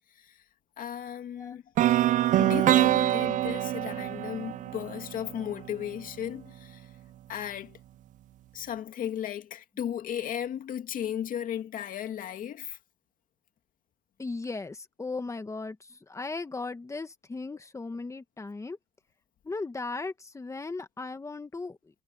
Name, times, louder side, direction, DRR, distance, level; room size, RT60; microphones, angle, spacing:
voice 1, 0.8-1.6 2.4-6.9 7.3-7.8 8.5-12.8, left 10 dB, 50° left, 2.3 m, -35 dB
sound 1, 1.8-5.7, right 13 dB, 45° right, 0.4 m, -25 dB
voice 2, 14.2-18.8 19.4-21.8, left 3 dB, 15° left, 1.7 m, -37 dB
cardioid pair, 120°, 18 cm